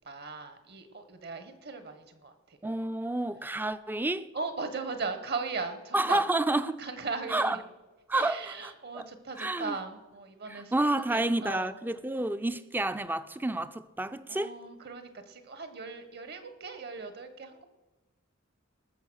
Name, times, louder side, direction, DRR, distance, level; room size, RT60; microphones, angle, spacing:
voice 1, 0.0-2.3 4.3-6.2 6.8-7.6 8.1-10.7 11.1-11.7 14.3-17.6, right 4 dB, 50° right, 1.4 m, -38 dB
voice 2, 2.6-4.3 5.9-6.8 7.3-7.6 8.1-9.1 9.4-9.8 10.5-14.6, right 2 dB, 10° right, 0.5 m, -30 dB
19.0 x 6.9 x 6.4 m
head